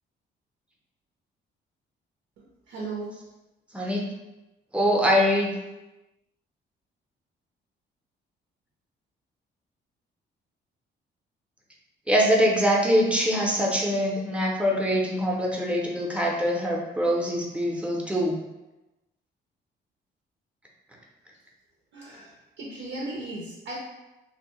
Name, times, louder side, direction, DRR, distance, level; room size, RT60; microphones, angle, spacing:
voice 1, 2.4-3.2 21.9-23.8, right 2 dB, 80° right, -3 dB, 0.6 m, -37 dB
voice 2, 3.7-4.0 4.7-5.5 12.1-18.3, equal, 5° right, -2 dB, 0.6 m, -23 dB
2.6 x 2.1 x 2.9 m, 1.0 s
cardioid pair, 90°, 20 cm